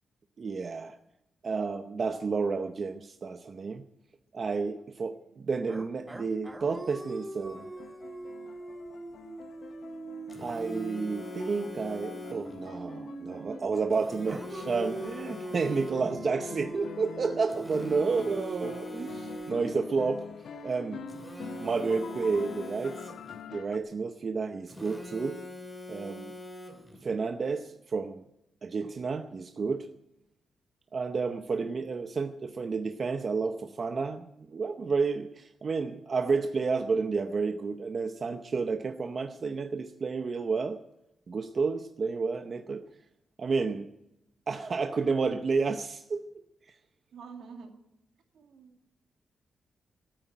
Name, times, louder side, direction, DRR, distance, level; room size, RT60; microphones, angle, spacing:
voice 1, 0.4-1.0 1.4-3.8 4.3-7.7 10.4-20.3 20.6-21.0 21.6-23.0 23.5-25.4 25.9-26.3 27.0-28.2 28.6-29.9 30.9-40.8 41.3-42.8 43.4-43.9 44.5-46.2 46.7-46.8, right 4 dB, 40° right, 8 dB, 0.7 m, -31 dB
sound 1, 5.7-13.7 14.3-22.4, right 2 dB, 15° right, 0.9 m, -42 dB
sound 2, 7.5-23.8, left 8 dB, 70° left, 0.8 m, -46 dB
Telephone, 10.3-12.6 13.9-16.3 17.5-19.9 21.1-23.5 24.7-27.1, left 2 dB, 10° left, 2.5 m, -44 dB
voice 2, 17.9-18.4 47.1-47.7 48.3-48.9, right 5 dB, 75° right, 4 dB, 2.3 m, -48 dB
13.0 x 9.1 x 9.9 m, 0.85 s
wide cardioid pair, 135°, 0 cm